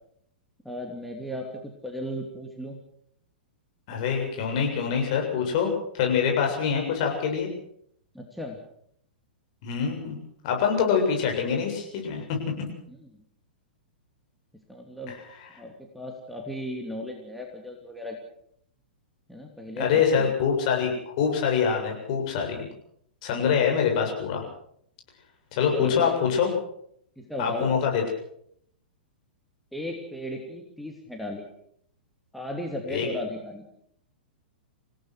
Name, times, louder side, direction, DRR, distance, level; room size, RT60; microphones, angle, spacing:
voice 1, 0.6-2.8 8.1-8.6 12.9-13.1 14.7-15.2 15.6-18.3 19.3-20.3 25.7-26.2 27.2-27.7 29.7-31.5 32.3-33.7, left 1 dB, ahead, 0 dB, 2.8 m, -36 dB
voice 2, 3.9-7.5 9.6-10.2 10.4-12.2 19.7-22.7 23.2-24.4 25.5-26.5 27.4-28.0 32.9-33.1, left 7 dB, 45° left, 1 dB, 7.5 m, -25 dB
27.5 x 17.0 x 6.3 m, 0.69 s
figure-of-eight pair, 105°, 5 cm